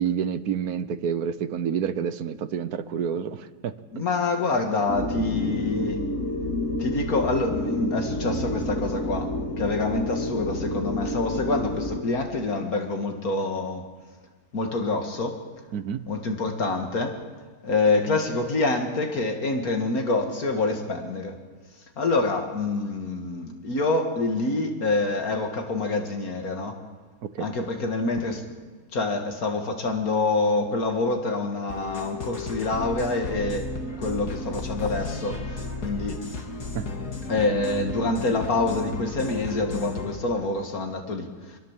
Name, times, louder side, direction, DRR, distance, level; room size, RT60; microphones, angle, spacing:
voice 1, 0.0-4.1 15.7-16.0 27.3-27.5 36.7-36.9, right 7 dB, 75° right, 13 dB, 1.4 m, -28 dB
voice 2, 3.9-6.0 6.8-9.3 9.6-13.8 14.5-15.4 16.1-17.2 17.6-21.3 22.0-26.8 27.4-28.4 28.9-33.7 34.0-36.4 37.3-41.6, left 3 dB, 70° left, 4 dB, 2.5 m, -26 dB
sound 1, 4.9-12.0, left 1 dB, 50° left, 2.5 m, -29 dB
sound 2, 31.7-40.2, left 2 dB, 90° left, 2.9 m, -34 dB
25.5 x 22.0 x 7.4 m, 1.5 s
omnidirectional pair, 1.6 m